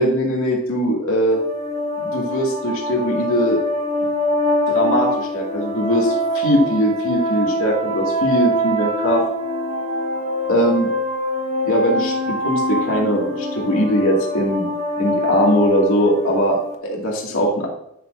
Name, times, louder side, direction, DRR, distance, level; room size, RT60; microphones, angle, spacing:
voice 1, 0.0-1.4 2.0-3.6 4.7-9.2 10.5-10.9 11.6-14.7 15.0-17.7, equal, 65° left, -2 dB, 2.3 m, -20 dB
sound 1, 1.3-16.7, left 1 dB, 30° right, 1.0 m, -24 dB
10.5 x 6.4 x 2.6 m, 0.77 s
head